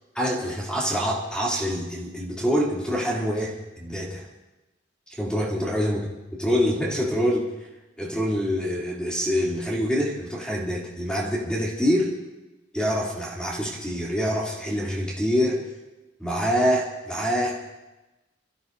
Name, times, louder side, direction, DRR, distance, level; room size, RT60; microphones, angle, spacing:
voice 1, 0.1-4.3 5.1-6.0 6.3-7.5 8.0-12.2 12.7-15.6 16.2-17.5, equal, 5° left, -5 dB, 3.0 m, -25 dB
28.5 x 14.5 x 2.7 m, 1.0 s
head